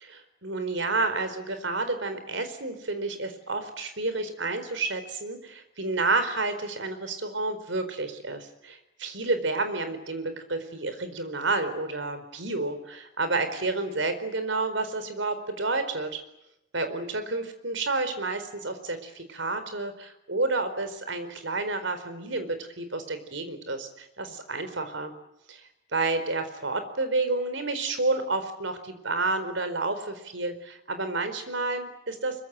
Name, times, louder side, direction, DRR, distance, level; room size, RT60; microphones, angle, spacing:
voice 1, 0.1-16.2 16.7-25.1 25.5-32.4, right 3 dB, 75° right, 9 dB, 4.5 m, -30 dB
25.0 x 23.5 x 9.1 m, 0.84 s
head